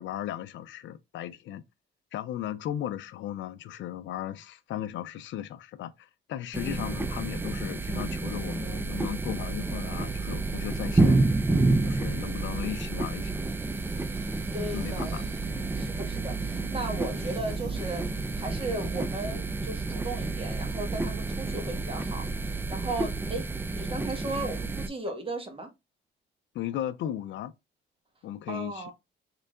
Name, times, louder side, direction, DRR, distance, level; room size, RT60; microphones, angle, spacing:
voice 1, 0.0-1.6 2.1-11.2 11.8-13.4 14.7-15.2 15.6-15.7 26.5-27.5 28.2-28.9, left 11 dB, 70° left, 0.4 m, -36 dB
sound 1, 6.5-24.9, right 3 dB, 10° right, 0.3 m, -29 dB
sound 2, 7.7-19.1, right 4 dB, 60° right, 0.7 m, -47 dB
voice 2, 14.5-15.2 15.7-23.5 23.7-25.7 28.5-28.9, right 2 dB, 25° right, 1.2 m, -36 dB
3.8 x 3.1 x 2.4 m
cardioid pair, 90°, 20 cm